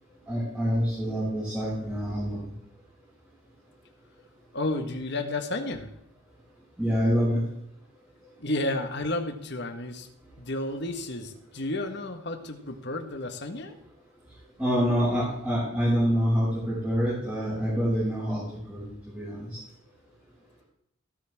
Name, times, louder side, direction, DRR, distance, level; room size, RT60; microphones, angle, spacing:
voice 1, 0.3-2.5 6.8-7.4 14.6-18.4 18.7-19.6, equal, 5° right, -10 dB, 6.5 m, -26 dB
voice 2, 4.5-5.9 8.4-10.1 10.4-13.8, left 2 dB, 55° left, 5 dB, 1.6 m, -32 dB
16.0 x 13.5 x 3.7 m, 0.75 s
head